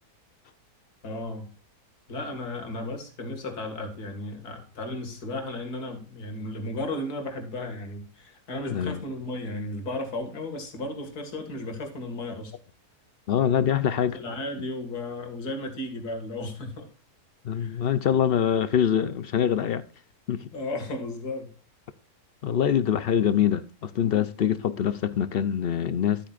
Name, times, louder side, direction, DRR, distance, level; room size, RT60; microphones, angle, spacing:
voice 1, 1.0-1.5 2.1-12.5 14.1-16.9 17.5-17.8 20.5-21.5, left 1 dB, 85° left, 2.6 m, -34 dB
voice 2, 13.3-14.2 17.4-19.8 20.3-20.5 22.4-26.2, left 9 dB, 65° left, 0.5 m, -24 dB
13.0 x 8.5 x 2.5 m
omnidirectional pair, 1.6 m